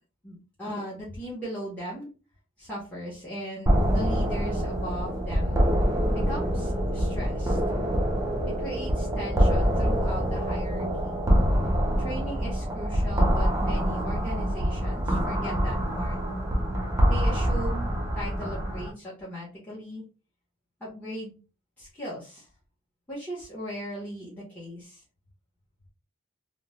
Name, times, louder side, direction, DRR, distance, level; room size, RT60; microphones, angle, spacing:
voice 1, 0.2-2.1 2.6-5.6 6.1-7.6 8.5-11.2 12.0-16.2 17.1-20.0 20.8-21.3 21.8-22.5 23.1-25.0, equal, 5° left, -7 dB, 0.7 m, -38 dB
sound 1, 3.7-18.9, equal, 15° right, 0.4 m, -25 dB
2.2 x 2.0 x 2.9 m, 0.34 s
head